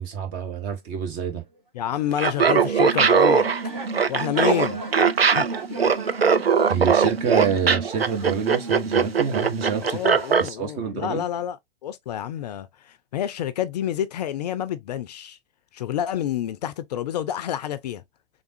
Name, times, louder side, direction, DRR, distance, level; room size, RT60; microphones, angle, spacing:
voice 1, 0.0-1.4 6.7-10.0 10.4-11.2, right 7 dB, 30° right, 0.8 m, -27 dB
sound 1, 0.9-1.0 1.5-1.6 2.4-2.6 3.0-3.1 3.5-9.5 9.8-10.9, right 1 dB, 50° right, 2.2 m, -41 dB
voice 2, 1.7-3.5 4.1-4.8 5.3-5.9 9.8-15.4 15.7-18.0, left 11 dB, 45° left, 0.4 m, -28 dB
Laughter, 2.1-10.5, right 6 dB, 85° right, 0.5 m, -20 dB
sound 2, 2.5-9.8, right 4 dB, 70° right, 1.3 m, -35 dB
3.6 x 3.5 x 2.5 m
figure-of-eight pair, 100°, 30 cm